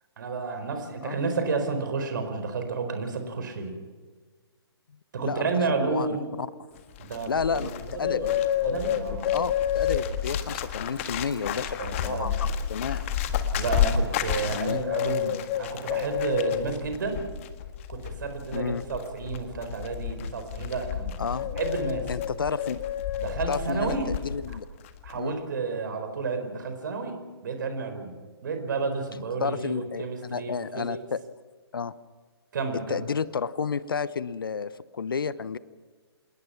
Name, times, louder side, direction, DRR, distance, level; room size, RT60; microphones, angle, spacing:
voice 1, 0.2-3.8 5.1-6.3 7.1-8.3 8.6-9.3 11.5-12.3 13.5-17.2 17.9-22.1 23.2-24.1 25.0-27.2 27.4-28.1 28.4-31.0 32.5-33.0, right 4 dB, 50° right, 7 dB, 4.8 m, -31 dB
Bird, 6.8-24.6 24.8-25.2, left 9 dB, 30° left, 1.7 m, -30 dB
voice 2, 7.3-7.7 8.0-8.2 9.2-13.1 14.4-14.8 18.5-18.8 21.2-21.5 22.1-22.8 23.5-24.7 25.1-25.4 29.4-31.2 31.7-31.9 32.7-35.6, left 6 dB, 55° left, 17 dB, 0.9 m, -31 dB
27.0 x 20.5 x 5.9 m, 1.5 s
figure-of-eight pair, 135°, 14 cm